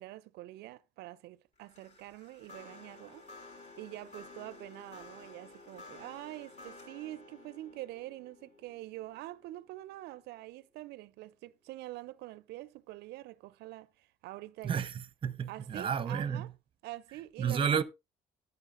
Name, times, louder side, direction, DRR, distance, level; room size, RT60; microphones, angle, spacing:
voice 1, 0.0-3.2 3.8-14.9 15.5-16.5 16.8-17.8, right 16 dB, 80° right, 0.4 m, -45 dB
sound 1, 1.6-10.9, left 3 dB, 40° left, 5.9 m, -53 dB
voice 2, 14.6-16.5 17.4-17.8, right 7 dB, 30° right, 0.8 m, -31 dB
14.0 x 9.5 x 2.5 m
cardioid pair, 110°, 17 cm